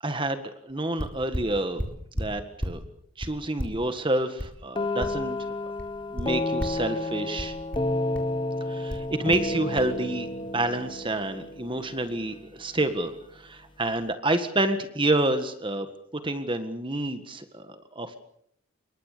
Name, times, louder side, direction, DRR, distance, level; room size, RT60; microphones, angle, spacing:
voice 1, 0.0-1.8 2.2-2.8 3.2-5.4 6.1-7.5 8.7-15.9 16.2-18.2, right 1 dB, 25° right, 8 dB, 1.7 m, -28 dB
sound 1, 0.7-0.8 1.0-2.8 3.2-5.5 5.8-6.9 7.4-8.4 8.9-9.5 9.8-9.9, equal, 5° left, 4.3 m, -34 dB
sound 2, 4.8-12.5, left 2 dB, 20° left, 1.1 m, -31 dB
27.0 x 23.0 x 6.8 m, 0.71 s
head